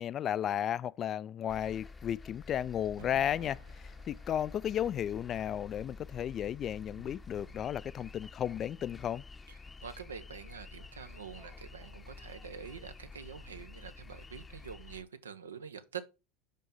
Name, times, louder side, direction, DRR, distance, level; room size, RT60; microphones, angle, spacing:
voice 1, 0.0-3.6 4.1-9.2, left 10 dB, 35° left, 0.3 m, -34 dB
sound 1, 1.5-15.0, left 4 dB, 20° left, 0.7 m, -50 dB
sound 2, 3.0-9.7, right 7 dB, 65° right, 1.2 m, -59 dB
voice 2, 9.5-16.0, right 7 dB, 80° right, 0.7 m, -46 dB
5.4 x 5.2 x 5.4 m
figure-of-eight pair, 75°, 0 cm